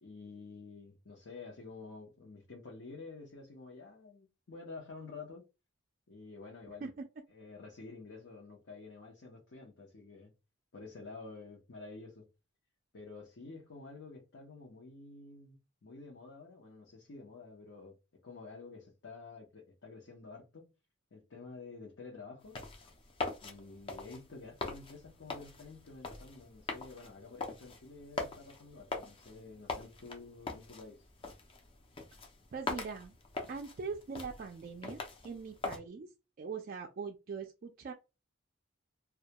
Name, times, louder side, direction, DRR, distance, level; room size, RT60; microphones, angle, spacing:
voice 1, 0.0-5.4 6.1-6.9 7.3-10.3 10.7-12.3 12.9-18.0 18.2-20.7 21.1-22.6 23.4-31.1, left 3 dB, 70° left, 0.7 m, -50 dB
sound 1, 22.4-35.8, left 3 dB, 25° left, 0.4 m, -43 dB
voice 2, 32.5-33.2 33.5-36.1 36.4-37.9, right 5 dB, 45° right, 0.3 m, -42 dB
2.3 x 2.1 x 2.8 m
head